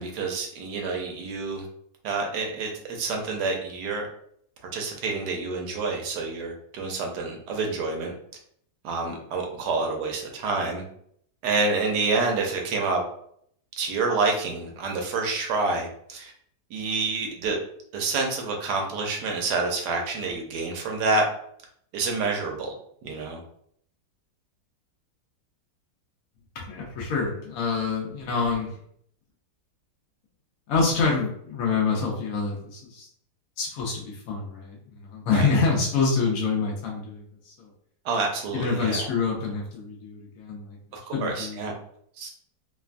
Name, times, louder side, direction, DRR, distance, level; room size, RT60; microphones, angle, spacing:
voice 1, 0.0-1.7 2.0-4.1 4.7-8.1 8.8-10.8 11.4-13.0 13.8-16.3 16.7-17.6 17.9-21.2 21.9-22.7 23.0-23.4 35.3-35.5 38.0-39.1 40.9-41.7 42.2-42.3, right 3 dB, 75° right, 2 dB, 1.2 m, -28 dB
voice 2, 26.6-28.7 30.7-33.1 33.6-37.7 38.5-40.8 41.1-41.7, left 4 dB, 65° left, -2 dB, 0.8 m, -26 dB
3.1 x 2.2 x 2.4 m, 0.66 s
omnidirectional pair, 1.9 m